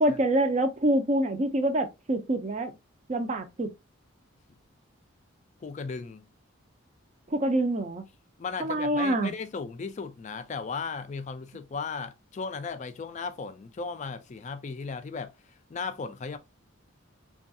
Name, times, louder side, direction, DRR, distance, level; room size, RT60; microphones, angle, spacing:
voice 1, 0.0-2.7 3.1-3.7 7.3-8.0 8.6-9.3, right 1 dB, 35° right, 0.4 m, -26 dB
voice 2, 5.6-6.3 8.4-16.4, left 4 dB, 35° left, 0.3 m, -36 dB
3.4 x 2.3 x 2.6 m
head